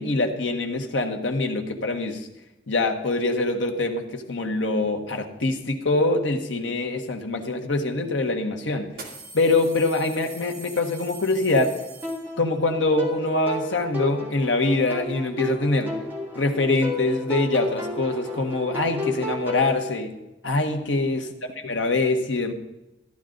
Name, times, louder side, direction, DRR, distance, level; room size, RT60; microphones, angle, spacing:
voice 1, 0.0-2.3 2.7-8.9 9.3-11.7 12.4-15.9 16.3-20.2 20.4-21.3 21.6-22.5, left 2 dB, 85° left, 4 dB, 1.4 m, -24 dB
sound 1, 7.8-7.9 8.9-12.7, right 3 dB, 55° right, 2.3 m, -43 dB
sound 2, 12.0-19.7, left 2 dB, 10° right, 2.2 m, -32 dB
14.0 x 11.0 x 3.9 m, 0.96 s
head